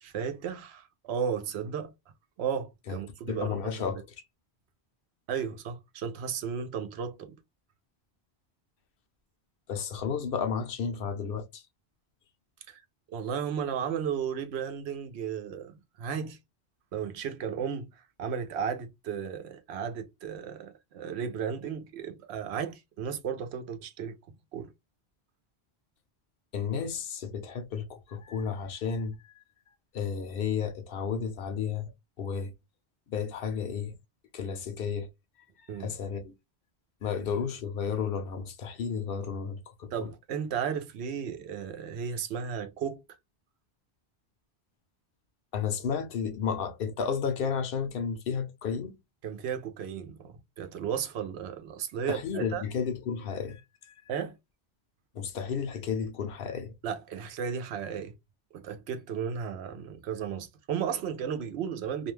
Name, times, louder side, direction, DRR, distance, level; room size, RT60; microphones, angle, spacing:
voice 1, 0.0-1.9 2.4-3.6 5.3-7.3 12.7-12.8 13.1-16.4 16.9-24.2 24.5-24.7 35.7-35.9 39.9-43.0 49.2-52.6 54.1-54.4 56.8-58.1 58.5-62.1, right 7 dB, 80° right, 0.8 m, -34 dB
voice 2, 3.3-4.0 9.7-11.6 26.5-29.4 29.9-31.9 32.2-32.5 33.1-34.0 34.3-35.1 35.8-36.3 37.0-40.1 45.5-49.0 52.1-53.9 55.1-56.7, left 6 dB, 65° left, 0.7 m, -32 dB
2.4 x 2.1 x 3.0 m
omnidirectional pair, 1.1 m